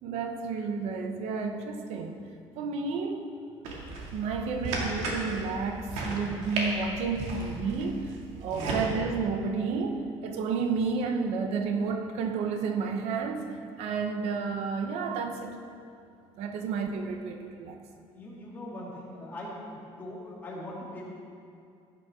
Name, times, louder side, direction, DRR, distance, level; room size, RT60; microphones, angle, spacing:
voice 1, 0.0-2.2 2.6-3.2 4.1-8.1 8.4-15.6 16.4-17.8, right 5 dB, 70° right, 5 dB, 0.9 m, -31 dB
sound 1, 3.6-8.8, right 2 dB, 90° right, 2.4 m, -35 dB
voice 2, 8.4-8.7 13.7-13.9 18.1-21.0, left 1 dB, 15° left, -6 dB, 2.7 m, -41 dB
16.0 x 10.0 x 3.7 m, 2.5 s
cardioid pair, 170°, 11 cm